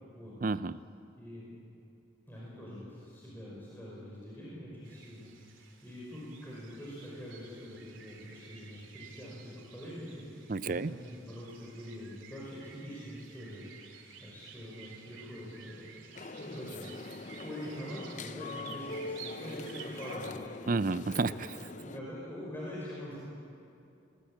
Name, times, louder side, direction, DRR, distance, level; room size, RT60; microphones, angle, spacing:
voice 1, 0.4-0.8 10.5-10.9 20.7-21.5, right 3 dB, 45° right, 15 dB, 0.5 m, -30 dB
voice 2, 1.2-1.6 2.3-20.3 21.1-21.4 21.7-23.2, equal, 10° left, -6 dB, 5.1 m, -44 dB
sound 1, 4.8-20.3, right 7 dB, 85° right, 3.1 m, -53 dB
sound 2, 16.1-22.0, left 3 dB, 40° left, 0.6 m, -43 dB
22.5 x 20.0 x 8.7 m, 2.5 s
head